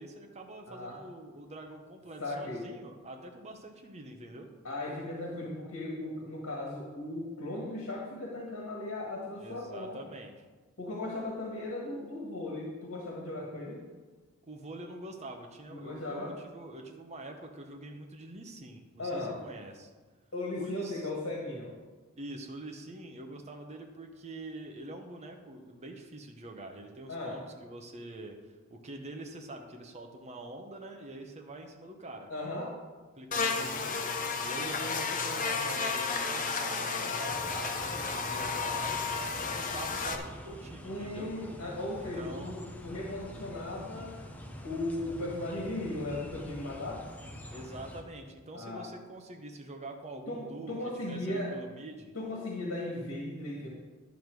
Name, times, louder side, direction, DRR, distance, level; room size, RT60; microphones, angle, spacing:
voice 1, 0.0-4.5 9.3-10.4 14.5-19.9 20.6-21.1 22.2-32.3 33.2-39.1 39.4-41.3 42.2-42.5 47.5-50.7 51.1-52.1, right 1 dB, 30° right, 3 dB, 0.9 m, -45 dB
voice 2, 0.7-1.0 2.2-2.7 4.6-10.0 10.8-13.8 15.7-16.3 19.0-19.4 20.3-21.7 27.1-27.4 32.3-32.8 40.8-44.3 44.6-47.1 48.5-48.9 50.3-51.6 52.1-53.7, left 2 dB, 75° left, -2 dB, 1.7 m, -37 dB
Buzz, 33.3-40.1, left 4 dB, 40° left, 0.9 m, -32 dB
sound 1, 37.3-48.0, equal, 5° left, 0.9 m, -46 dB
11.0 x 7.2 x 4.7 m, 1.3 s
head